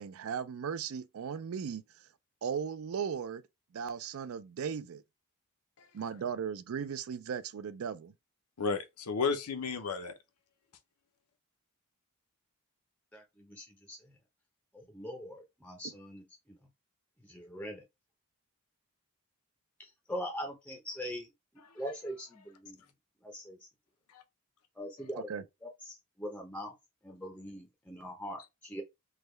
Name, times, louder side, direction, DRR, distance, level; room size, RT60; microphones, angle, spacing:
voice 1, 0.0-2.1 2.4-3.4 3.7-5.0 5.9-8.1 25.3-25.4, right 7 dB, 65° right, 0.4 m, -37 dB
voice 2, 8.6-10.2 24.1-24.2, left 5 dB, 85° left, 0.7 m, -33 dB
voice 3, 13.1-14.1 14.7-16.6 17.2-17.9 19.8-21.3 21.7-22.8 23.2-23.7 24.8-25.3 25.6-26.7 27.0-28.8, equal, 5° left, 0.5 m, -42 dB
3.5 x 2.2 x 3.1 m
head